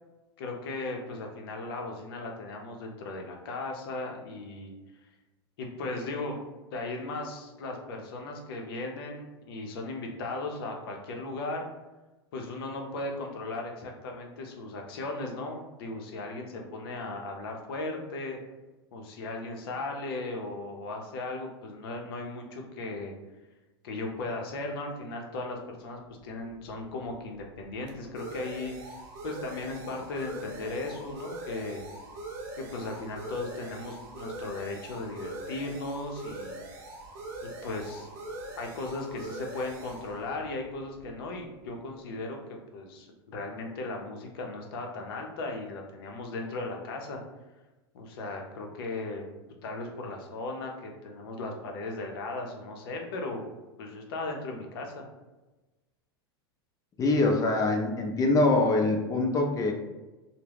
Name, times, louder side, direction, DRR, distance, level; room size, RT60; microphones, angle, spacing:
voice 1, 0.4-4.7 5.6-6.4 6.7-11.7 12.3-18.4 18.9-23.1 23.8-31.8 32.6-36.6 37.4-38.1 38.5-47.2 47.9-49.2 49.6-53.4 53.8-55.1, left 2 dB, 70° left, 2 dB, 0.6 m, -37 dB
sound 1, 26.2-41.7, right 2 dB, 55° right, 0.6 m, -43 dB
voice 2, 57.0-59.7, left 2 dB, 25° left, 2 dB, 0.5 m, -24 dB
2.2 x 2.0 x 3.3 m, 1.1 s
hypercardioid pair, 95°, 13 cm